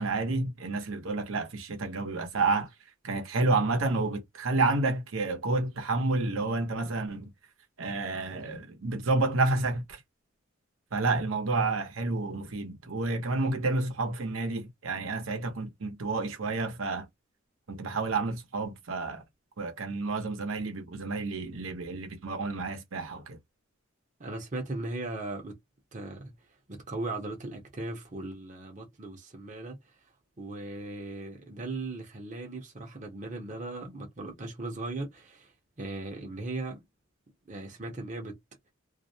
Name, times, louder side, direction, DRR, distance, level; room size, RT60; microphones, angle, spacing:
voice 1, 0.0-2.7 3.0-7.3 7.8-10.0 10.9-17.1 17.7-19.2 19.6-23.4, right 3 dB, 80° right, 0.8 m, -30 dB
voice 2, 24.2-25.6 25.9-26.3 26.7-29.8 30.4-35.5 35.8-36.8 37.5-38.4, right 2 dB, 35° right, 0.7 m, -38 dB
2.4 x 2.1 x 2.7 m
head